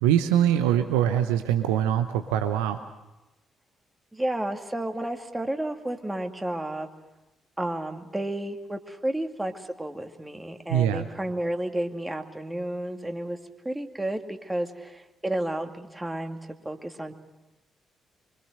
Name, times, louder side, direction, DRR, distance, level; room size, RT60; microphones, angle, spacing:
voice 1, 0.0-2.9 10.7-11.1, right 10 dB, 75° right, 8 dB, 0.9 m, -23 dB
voice 2, 4.1-6.9 7.6-13.4 13.6-16.4 16.6-17.1, right 1 dB, 15° right, 5 dB, 2.3 m, -31 dB
24.5 x 24.5 x 6.6 m, 1.0 s
figure-of-eight pair, 40°, 0 cm